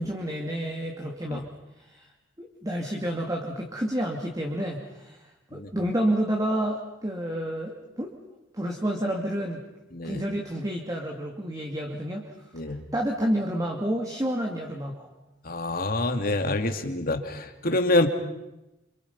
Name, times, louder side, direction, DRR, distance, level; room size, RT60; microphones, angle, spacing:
voice 1, 0.0-1.5 1.8-2.1 2.4-8.1 8.5-9.6 10.0-12.3 12.6-15.1, right 1 dB, 20° right, 1 dB, 2.4 m, -29 dB
voice 2, 12.5-12.8 15.4-18.1, left 2 dB, 50° left, 6 dB, 2.4 m, -26 dB
29.0 x 27.0 x 5.5 m, 0.96 s
head